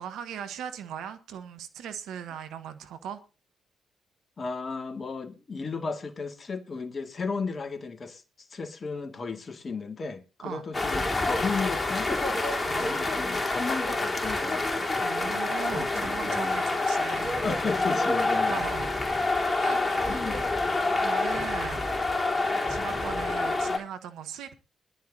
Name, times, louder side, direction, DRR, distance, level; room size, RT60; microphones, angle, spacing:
voice 1, 0.0-3.2 10.4-10.6 12.6-13.2 15.0-17.5 18.5-18.9 19.6-20.2 21.0-21.9 22.7-24.5, right 9 dB, 75° right, 1.3 m, -39 dB
voice 2, 4.4-8.2 8.5-12.1 12.8-14.9 15.2-16.5 17.4-18.6 20.1-20.4, left 4 dB, 45° left, 2.1 m, -34 dB
sound 1, 10.7-23.8, left 2 dB, 30° left, 3.8 m, -27 dB
19.5 x 11.5 x 2.8 m
hypercardioid pair, 40°, 0 cm